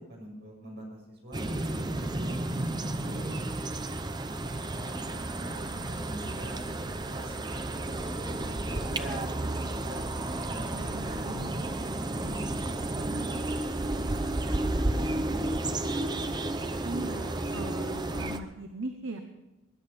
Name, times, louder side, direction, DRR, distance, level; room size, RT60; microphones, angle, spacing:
voice 1, 0.0-2.4 2.8-3.3 3.8-4.0 4.3-7.3 7.8-10.0 10.5-12.4 12.8-13.4 13.7-15.5, equal, 55° right, -2 dB, 6.7 m, -45 dB
sound 1, 1.3-18.4, right 2 dB, 20° right, 0.7 m, -32 dB
voice 2, 10.6-11.5 16.8-19.2, right 2 dB, 70° right, 5 dB, 1.1 m, -39 dB
21.0 x 11.0 x 5.4 m, 1.0 s
head